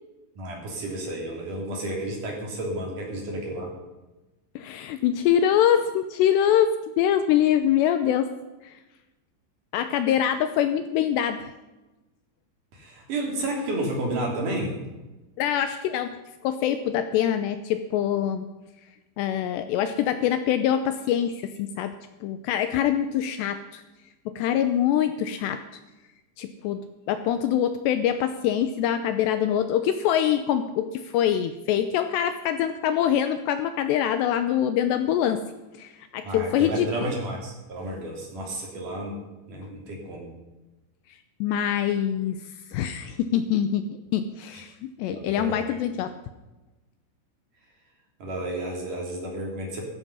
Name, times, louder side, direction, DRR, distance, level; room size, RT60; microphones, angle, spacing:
voice 1, 0.4-3.7 12.7-14.8 36.2-39.2 39.5-40.3 45.1-45.8 48.2-49.8, right 1 dB, 45° right, 0 dB, 4.3 m, -31 dB
voice 2, 4.6-8.3 8.6-8.7 9.7-11.5 15.4-16.2 16.4-18.5 19.2-21.9 22.2-23.8 24.3-25.6 26.4-35.4 35.8-36.9 41.4-42.4 42.7-46.1, left 10 dB, 80° left, 9 dB, 2.6 m, -24 dB
16.5 x 13.5 x 5.5 m, 1.1 s
omnidirectional pair, 5.5 m